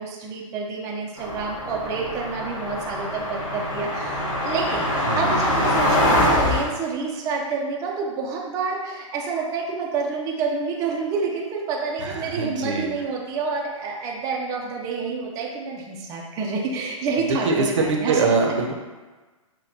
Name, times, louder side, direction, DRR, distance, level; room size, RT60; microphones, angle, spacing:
voice 1, 0.0-4.9 5.2-18.3, right 4 dB, 20° right, -2 dB, 0.4 m, -28 dB
sound 1, 1.2-6.6, left 1 dB, 70° left, 1.4 m, -24 dB
voice 2, 5.1-5.4 12.0-12.9 17.4-18.7, right 4 dB, 65° right, 2 dB, 0.7 m, -23 dB
5.9 x 2.2 x 2.6 m, 1.3 s
hypercardioid pair, 135°, 17 cm